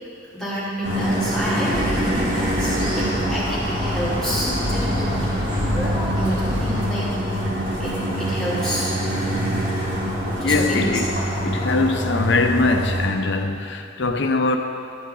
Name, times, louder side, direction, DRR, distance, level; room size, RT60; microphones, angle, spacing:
voice 1, 0.3-5.3 5.7-7.2 7.8-9.1 10.4-10.9, equal, 5° left, -9 dB, 2.0 m, -29 dB
sound 1, 0.8-13.1, equal, 75° right, 2.5 m, -25 dB
sound 2, 1.7-6.8, equal, 25° right, 1.6 m, -28 dB
voice 2, 10.4-11.1 11.4-14.6, left 3 dB, 65° left, 6 dB, 0.7 m, -22 dB
12.5 x 8.3 x 3.9 m, 2.5 s
head